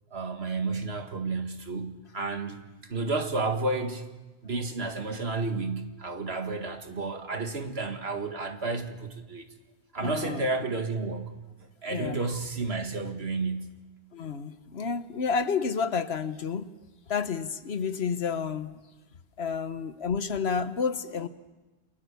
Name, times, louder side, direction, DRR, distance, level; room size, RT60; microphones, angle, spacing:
voice 1, 0.1-2.6 2.8-4.1 4.4-9.5 9.9-11.3 11.8-13.8, right 3 dB, 65° right, 5 dB, 2.1 m, -31 dB
voice 2, 10.0-10.4 11.9-12.2 14.1-16.6 17.1-18.7 19.4-21.3, left 5 dB, 70° left, 11 dB, 1.3 m, -30 dB
29.0 x 21.0 x 7.0 m, 1.2 s
omnidirectional pair, 1.1 m